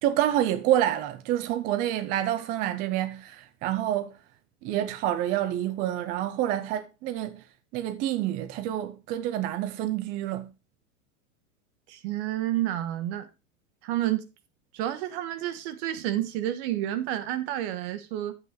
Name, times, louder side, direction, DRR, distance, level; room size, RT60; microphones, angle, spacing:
voice 1, 0.0-4.1 4.6-7.4 7.7-10.5, right 12 dB, 20° right, 0.3 m, -28 dB
voice 2, 11.9-13.3 13.8-14.2 14.7-18.3, right 13 dB, 50° right, 1.4 m, -30 dB
9.3 x 8.1 x 3.0 m
hypercardioid pair, 115°, 42 cm